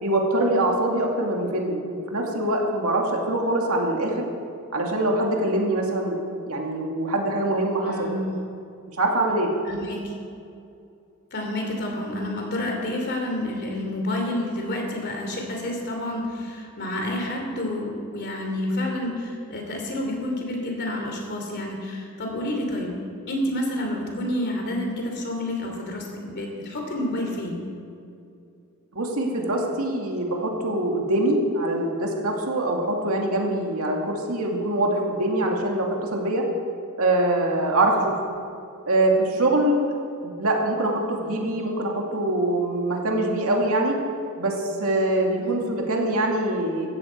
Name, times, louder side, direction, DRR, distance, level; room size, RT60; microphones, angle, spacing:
voice 1, 0.0-1.8 2.1-4.1 4.7-6.2 6.5-8.1 9.0-9.5 28.9-36.4 37.0-38.1 38.9-39.8 40.2-44.0 44.4-46.9, right 1 dB, 70° right, 0 dB, 2.5 m, -24 dB
voice 2, 7.8-8.3 9.6-10.0 11.3-23.0 23.3-27.6 45.4-45.5, left 1 dB, 50° left, 1 dB, 3.1 m, -29 dB
17.0 x 14.0 x 4.7 m, 2.5 s
head